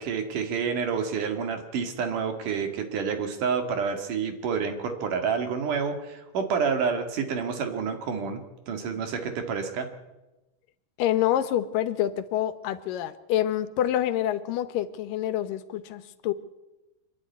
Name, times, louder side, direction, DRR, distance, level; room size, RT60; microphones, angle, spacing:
voice 1, 0.0-8.4 8.7-9.9, right 6 dB, 70° right, 6 dB, 3.6 m, -28 dB
voice 2, 11.0-16.3, left 12 dB, 85° left, 13 dB, 2.7 m, -27 dB
26.0 x 10.5 x 9.5 m, 1.0 s
omnidirectional pair, 3.8 m